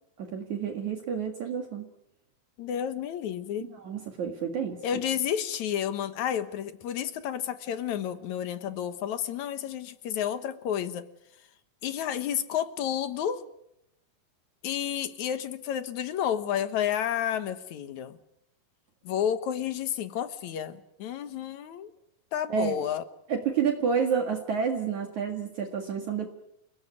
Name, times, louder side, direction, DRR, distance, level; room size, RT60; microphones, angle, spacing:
voice 1, 0.2-1.8 3.8-4.8 22.5-22.7 23.3-26.3, right 6 dB, 55° right, 4 dB, 3.1 m, -29 dB
voice 2, 2.6-3.8 4.8-11.0 11.8-13.4 14.6-18.2 19.0-21.9 22.3-23.0, left 9 dB, 60° left, 12 dB, 2.2 m, -31 dB
29.5 x 17.5 x 9.7 m, 0.80 s
omnidirectional pair, 4.3 m